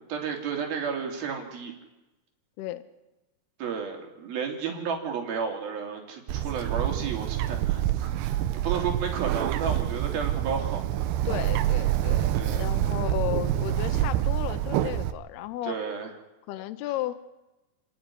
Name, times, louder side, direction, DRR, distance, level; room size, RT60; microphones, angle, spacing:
voice 1, 0.1-1.7 3.6-10.8 12.3-12.6 15.6-16.1, right 6 dB, 60° right, 2 dB, 4.6 m, -32 dB
Bird, 6.3-15.1, right 13 dB, 75° right, 2.8 m, -27 dB
voice 2, 11.3-12.3 12.5-15.8 16.5-17.2, left 14 dB, 75° left, 10 dB, 2.6 m, -34 dB
29.5 x 10.0 x 9.9 m, 1.0 s
omnidirectional pair, 5.1 m